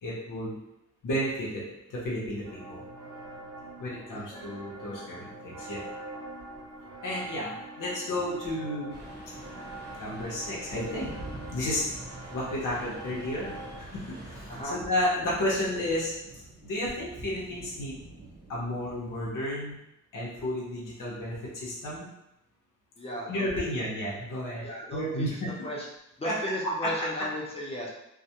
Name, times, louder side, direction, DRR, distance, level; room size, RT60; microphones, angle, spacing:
voice 1, 0.0-0.6 1.0-1.6 1.9-2.8 3.8-5.8 7.0-8.9 10.0-11.1 11.5-11.9 12.3-13.5 13.8-14.4 14.7-16.1 16.6-18.1 18.5-19.8 20.1-22.1 23.3-24.7 24.9-25.5 26.2-26.3, left 1 dB, 90° left, -5 dB, 0.8 m, -32 dB
sound 1, 2.4-13.8, right 2 dB, 90° right, 0.6 m, -44 dB
voice 2, 4.1-4.5 14.5-14.8 23.0-23.7 24.6-25.3 25.6-25.9 26.2-27.9, equal, 20° left, -3 dB, 0.5 m, -36 dB
sound 2, 8.9-14.6, right 1 dB, 10° right, 0.8 m, -46 dB
sound 3, 10.7-19.3, right 2 dB, 40° right, 0.4 m, -47 dB
2.3 x 2.1 x 2.8 m, 0.87 s
wide cardioid pair, 170°, 31 cm